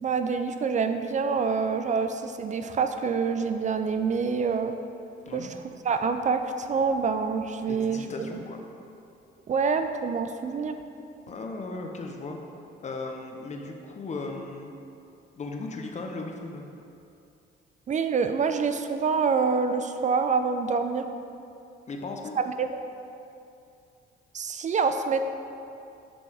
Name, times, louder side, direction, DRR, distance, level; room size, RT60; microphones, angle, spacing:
voice 1, 0.0-4.7 5.3-5.5 5.8-8.3 9.5-10.8 17.9-21.1 22.4-22.8 24.3-25.2, right 5 dB, 40° right, 8 dB, 0.4 m, -26 dB
voice 2, 7.7-8.6 11.3-12.4 12.8-14.7 15.4-16.7 21.9-22.4, left 3 dB, 35° left, 3 dB, 0.7 m, -36 dB
6.9 x 5.1 x 3.4 m, 2.6 s
cardioid pair, 90°, 20 cm